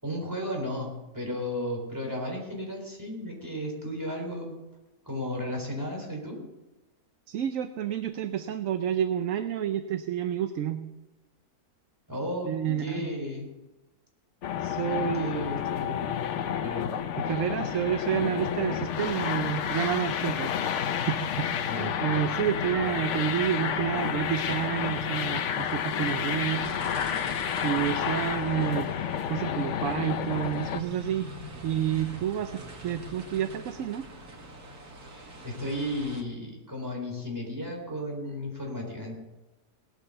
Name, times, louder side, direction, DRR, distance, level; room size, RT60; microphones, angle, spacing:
voice 1, 0.0-4.5 5.0-6.4 12.1-13.5 14.5-17.0 21.7-21.9 35.1-39.2, left 1 dB, 10° right, 0 dB, 4.1 m, -34 dB
voice 2, 7.3-10.8 12.4-13.0 14.6-15.3 17.2-20.5 20.8-26.8 27.6-28.9 29.3-31.3 31.6-34.1, right 10 dB, 65° right, 9 dB, 1.0 m, -29 dB
sound 1, 14.4-30.8, left 9 dB, 60° left, 0.9 m, -30 dB
sound 2, 18.0-36.2, right 1 dB, 85° right, 2.7 m, -46 dB
18.5 x 9.0 x 6.9 m, 1.1 s
omnidirectional pair, 1.6 m